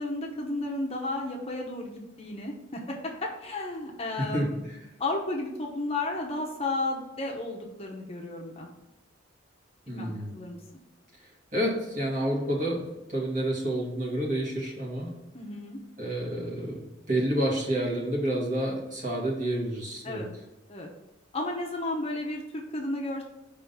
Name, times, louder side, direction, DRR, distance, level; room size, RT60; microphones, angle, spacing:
voice 1, 0.0-4.6 5.0-8.7 9.9-10.6 15.3-15.8 20.0-20.3 20.7-20.9 21.3-23.2, left 2 dB, 30° left, 0 dB, 0.9 m, -33 dB
voice 2, 4.1-4.6 9.9-10.3 11.5-12.8 13.1-15.1 16.0-20.2, right 1 dB, 40° right, -2 dB, 1.7 m, -29 dB
5.2 x 3.7 x 5.5 m, 0.97 s
head